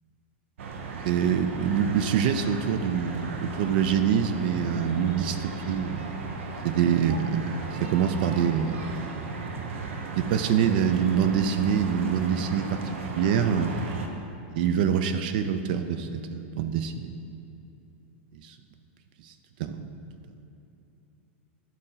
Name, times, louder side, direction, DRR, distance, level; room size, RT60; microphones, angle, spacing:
sound 1, 0.6-14.1, right 4 dB, 80° right, 0.9 m, -36 dB
voice 1, 1.0-6.0 6.6-8.8 10.1-13.8 14.5-17.1 18.4-18.5 19.2-19.3 19.6-19.9, right 8 dB, 45° right, 9 dB, 0.4 m, -25 dB
10.5 x 3.9 x 5.6 m, 2.8 s
supercardioid pair, 170°, 7 cm